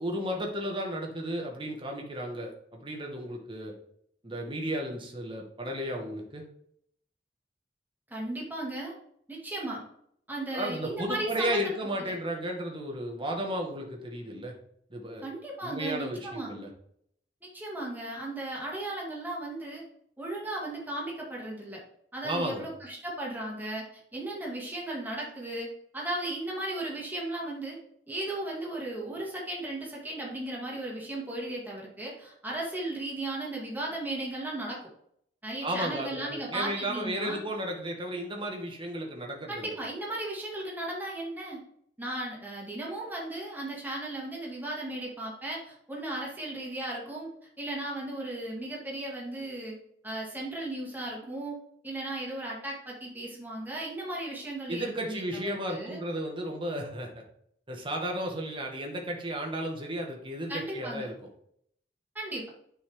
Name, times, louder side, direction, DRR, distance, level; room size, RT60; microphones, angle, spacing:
voice 1, 0.0-3.7 4.2-6.4 10.5-14.5 14.9-15.3 15.6-16.7 22.2-22.7 35.6-39.7 54.7-57.2 57.7-61.1, right 1 dB, 30° right, 1 dB, 1.9 m, -34 dB
voice 2, 8.1-8.9 9.3-9.8 10.3-11.7 15.2-16.5 17.5-19.8 20.2-21.8 22.1-25.7 25.9-27.8 28.1-34.8 35.4-37.4 39.5-41.6 42.0-47.3 47.6-49.8 50.0-51.6 51.8-56.0 60.5-61.1 62.1-62.5, right 1 dB, 10° right, -4 dB, 2.6 m, -36 dB
9.8 x 5.6 x 3.8 m, 0.67 s
head